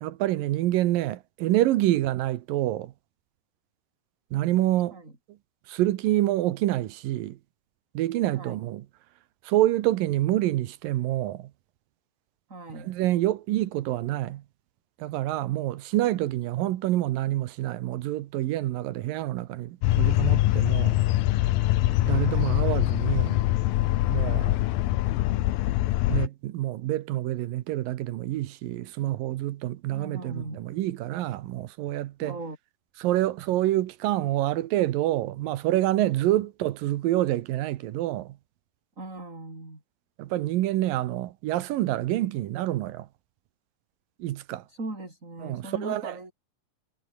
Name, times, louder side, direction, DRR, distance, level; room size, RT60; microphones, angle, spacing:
voice 1, 0.0-2.9 4.3-5.0 5.3-5.4 5.7-7.4 7.9-8.9 9.4-11.5 12.7-14.4 15.0-21.0 22.0-23.5 24.1-24.6 26.1-32.4 33.0-38.4 40.2-43.1 44.2-44.7 45.4-46.2, right 15 dB, 80° right, 2.7 m, -27 dB
voice 2, 12.5-12.9 29.9-30.6 32.2-32.6 39.0-39.8 44.7-46.3, right 2 dB, 20° right, 6.3 m, -38 dB
sound 1, 19.8-26.3, left 15 dB, 90° left, 2.8 m, -23 dB
omnidirectional pair, 4.0 m